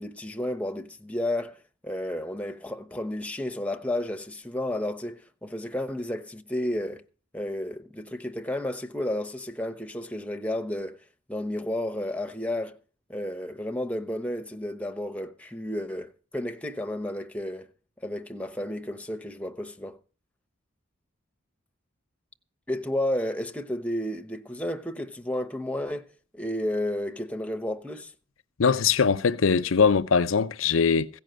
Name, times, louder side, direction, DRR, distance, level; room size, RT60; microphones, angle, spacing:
voice 1, 0.0-7.0 7.3-11.0 11.3-12.8 13.1-17.7 18.0-20.0 22.7-28.1, left 1 dB, 5° left, 1.0 m, -32 dB
voice 2, 28.6-31.1, left 5 dB, 80° left, 0.6 m, -21 dB
15.5 x 5.8 x 9.1 m
head